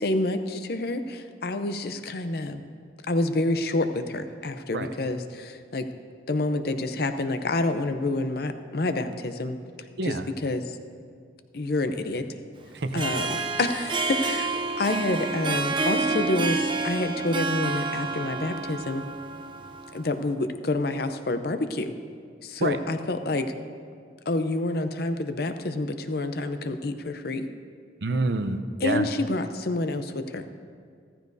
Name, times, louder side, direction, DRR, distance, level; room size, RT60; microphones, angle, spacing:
voice 1, 0.0-2.6 3.1-5.9 6.3-9.6 10.4-10.6 11.5-12.2 12.9-14.5 14.7-19.0 19.9-21.9 22.4-23.5 24.3-27.5 28.8-30.4, left 2 dB, 55° left, 9 dB, 0.6 m, -28 dB
voice 2, 10.0-10.3 12.7-13.0 22.6-22.8 28.0-29.1, right 2 dB, 65° right, 9 dB, 0.6 m, -28 dB
Harp, 12.8-20.1, right 3 dB, 25° right, 0.4 m, -29 dB
14.5 x 14.5 x 2.7 m, 2.1 s
head